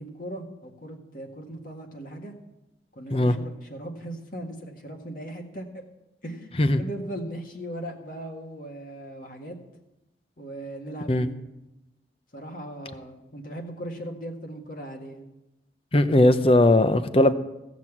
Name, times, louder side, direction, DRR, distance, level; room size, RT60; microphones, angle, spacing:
voice 1, 0.0-2.3 2.9-5.7 6.2-9.6 10.4-11.4 12.3-15.2, right 1 dB, 50° left, 2 dB, 1.8 m, -38 dB
voice 2, 15.9-17.3, left 1 dB, 30° left, 11 dB, 0.6 m, -19 dB
16.5 x 6.1 x 7.3 m, 0.97 s
head